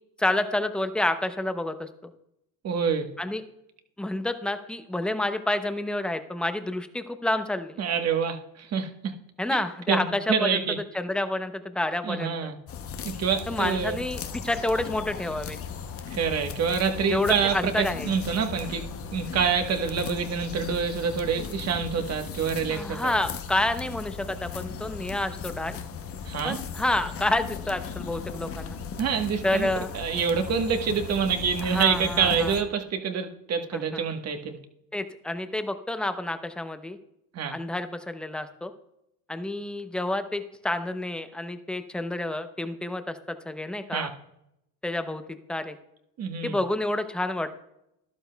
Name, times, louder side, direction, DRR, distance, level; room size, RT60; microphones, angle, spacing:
voice 1, 0.2-2.1 3.2-3.4 4.0-7.8 9.4-10.6 10.9-12.5 13.5-15.6 17.1-18.1 22.7-25.8 26.4-28.8 29.4-29.9 31.6-32.5 33.7-34.0 34.9-37.0 37.5-38.7 39.3-44.1 44.8-45.2 45.5-45.8 46.4-47.5, left 1 dB, ahead, 9 dB, 0.6 m, -29 dB
voice 2, 2.6-3.1 7.8-9.1 9.9-10.8 12.1-12.6 13.0-14.0 16.1-23.1 26.2-26.6 29.0-29.7 29.9-34.6 37.3-37.6 43.9-44.1 46.2-46.6, right 6 dB, 40° right, 5 dB, 1.3 m, -27 dB
sound 1, 12.7-32.6, left 6 dB, 35° left, 0.8 m, -37 dB
12.5 x 11.5 x 2.3 m, 0.81 s
supercardioid pair, 110°, 39 cm